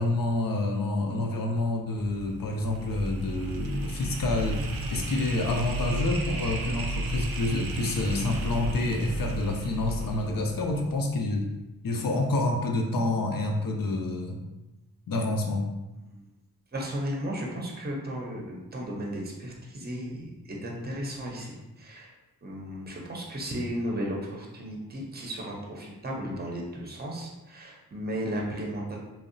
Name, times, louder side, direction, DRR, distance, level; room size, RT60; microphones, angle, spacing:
voice 1, 0.0-4.6 4.9-11.5 11.8-14.4 15.1-15.6, left 2 dB, 65° left, 2 dB, 0.5 m, -28 dB
sound 1, 2.0-11.1, right 2 dB, 65° right, 0.5 m, -34 dB
voice 2, 16.7-22.1 22.4-29.0, equal, 25° right, -1 dB, 0.6 m, -35 dB
2.7 x 2.0 x 2.5 m, 1.0 s
cardioid pair, 40°, 38 cm